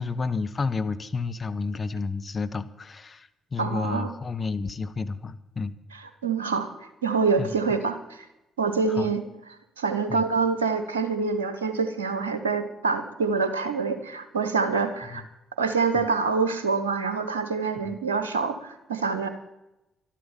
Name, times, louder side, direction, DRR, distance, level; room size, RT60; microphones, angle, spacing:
voice 1, 0.0-5.7 7.4-7.5 8.9-9.1 10.1-10.3 15.1-15.2 15.9-16.1 17.8-17.9, left 4 dB, 35° left, 10 dB, 1.1 m, -31 dB
voice 2, 3.6-4.1 6.2-8.3 8.6-9.2 9.8-15.2 15.6-19.3, right 4 dB, 85° right, 9 dB, 1.1 m, -26 dB
12.5 x 12.0 x 7.3 m, 0.93 s
figure-of-eight pair, 45°, 0 cm